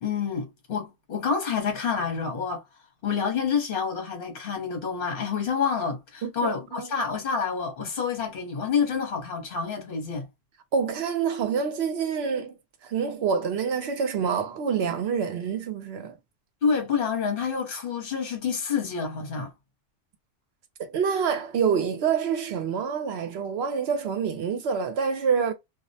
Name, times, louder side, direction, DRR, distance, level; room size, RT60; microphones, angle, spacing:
voice 1, 0.0-2.6 3.0-10.2 16.6-19.5, left 6 dB, 55° left, 1.1 m, -28 dB
voice 2, 6.2-6.9 10.7-12.6 12.8-16.2 20.8-25.5, right 6 dB, 70° right, 0.8 m, -27 dB
2.4 x 2.1 x 2.6 m
omnidirectional pair, 1.2 m